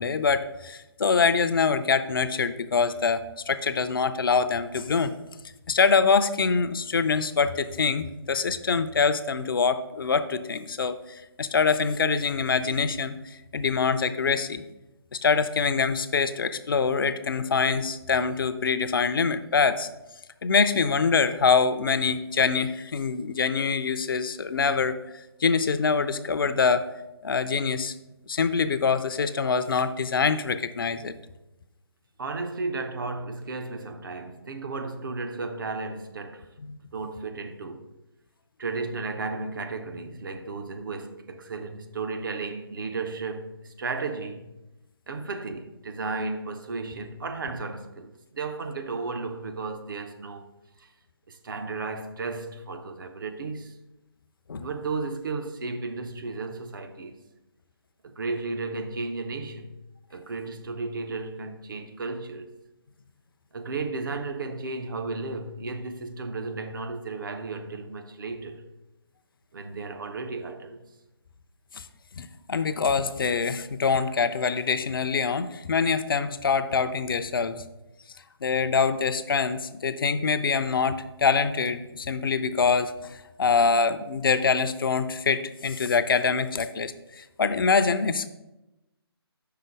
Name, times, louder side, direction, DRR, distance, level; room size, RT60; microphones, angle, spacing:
voice 1, 0.0-5.1 5.7-11.0 11.4-13.2 13.5-14.6 15.2-19.9 20.4-25.0 25.4-26.8 27.2-27.9 28.3-31.1 36.6-36.8 54.5-54.7 71.7-71.8 72.2-77.6 78.4-88.3, left 5 dB, 60° left, 0.4 m, -24 dB
voice 2, 32.2-36.5 36.9-37.9 38.6-44.5 45.1-50.5 50.8-50.9 51.3-53.7 54.6-57.2 58.0-59.7 60.1-62.5 63.5-68.6 69.5-70.8, right 3 dB, 55° right, 0.6 m, -34 dB
5.7 x 3.8 x 5.0 m
figure-of-eight pair, 150°, 13 cm